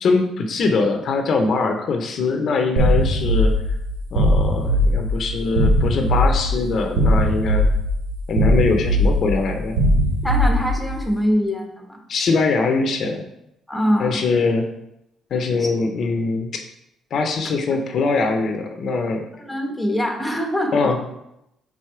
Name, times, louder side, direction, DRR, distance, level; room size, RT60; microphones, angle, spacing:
voice 1, 0.0-3.5 4.1-7.6 8.3-9.8 12.1-13.2 14.0-14.7 15.3-16.5 17.1-19.2 20.7-21.1, left 4 dB, 55° left, 4 dB, 0.8 m, -22 dB
sound 1, 2.8-11.0, equal, 85° right, 1.1 m, -19 dB
voice 2, 10.2-12.0 13.7-14.2 15.6-15.7 19.4-20.9, equal, 5° left, 1 dB, 1.1 m, -23 dB
4.9 x 4.1 x 5.6 m, 0.83 s
cardioid pair, 115°, 0 cm